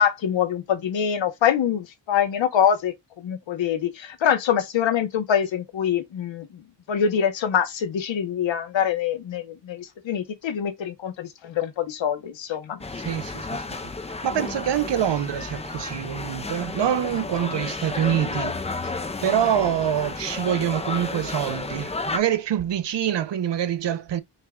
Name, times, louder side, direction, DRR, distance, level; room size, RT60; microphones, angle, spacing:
voice 1, 0.0-6.6 6.9-12.8, left 8 dB, 85° left, 1.0 m, -24 dB
sound 1, 12.8-22.2, left 3 dB, 15° left, 0.5 m, -32 dB
voice 2, 12.9-13.8 14.1-18.9 19.2-24.2, right 10 dB, 70° right, 0.8 m, -25 dB
5.5 x 2.3 x 3.6 m
wide cardioid pair, 110°, 44 cm